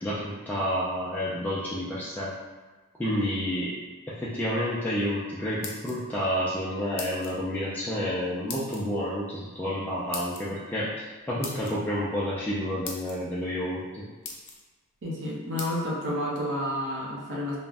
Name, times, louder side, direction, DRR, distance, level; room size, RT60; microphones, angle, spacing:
voice 1, 0.0-2.3 3.0-3.8 4.1-14.0, equal, 10° left, -9 dB, 0.3 m, -30 dB
sound 1, 5.4-6.3 7.0-7.4 8.5-8.8 10.1-10.4 11.4-11.8 12.5-12.6 12.8-13.2 13.8-13.9 14.2-14.6 15.6-15.7, left 4 dB, 80° left, 0.5 m, -38 dB
voice 2, 15.0-17.6, left 1 dB, 55° right, -4 dB, 0.6 m, -30 dB
2.4 x 2.0 x 3.3 m, 1.3 s
head